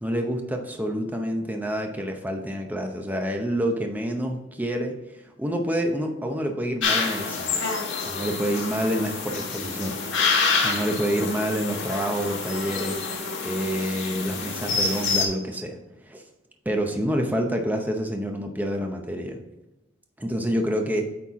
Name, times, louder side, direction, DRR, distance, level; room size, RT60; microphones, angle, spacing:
voice 1, 0.0-7.6 8.0-10.1 10.6-13.1 13.4-15.8 16.1-16.2 16.7-19.4 20.2-21.1, equal, 10° right, 3 dB, 0.7 m, -28 dB
sound 1, 6.8-15.3, left 4 dB, 70° left, 1.4 m, -27 dB
8.3 x 4.4 x 3.6 m, 1.0 s
head